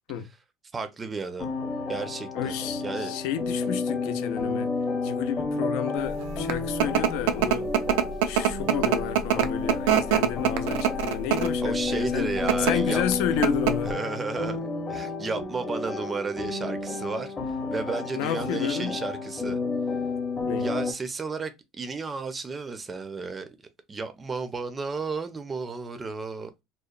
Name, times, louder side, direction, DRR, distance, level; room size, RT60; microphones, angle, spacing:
voice 1, 0.7-1.5 1.9-2.6 2.8-3.2 11.6-13.0 13.8-17.3 17.7-19.6 20.6-21.5 21.8-23.5 23.9-26.5, right 4 dB, 20° right, 0.4 m, -33 dB
sound 1, 1.4-20.9, left 3 dB, 20° left, 0.7 m, -31 dB
voice 2, 2.3-4.7 5.0-7.7 8.3-12.3 12.6-14.0 18.1-19.0 20.5-20.7, left 9 dB, 75° left, 0.4 m, -31 dB
sound 2, 6.2-11.6 12.3-12.7 13.1-13.2 13.4-13.9, right 9 dB, 85° right, 0.3 m, -23 dB
2.9 x 2.0 x 2.3 m
cardioid pair, 130°, 0 cm